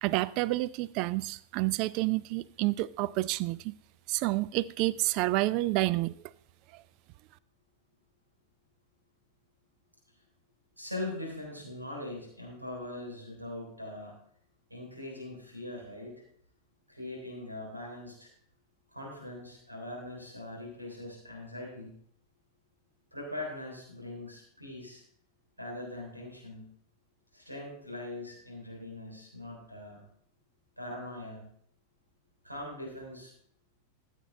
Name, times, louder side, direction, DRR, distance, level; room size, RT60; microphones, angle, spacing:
voice 1, 0.0-3.7 4.1-6.1, right 18 dB, 40° right, 0.3 m, -29 dB
voice 2, 10.8-14.1 14.7-16.1 16.9-18.3 18.9-21.9 23.1-25.0 25.6-26.7 27.3-30.0 30.8-31.5 32.4-33.3, left 1 dB, 85° right, 3.4 m, -41 dB
14.0 x 7.6 x 3.3 m
figure-of-eight pair, 90°, 0 cm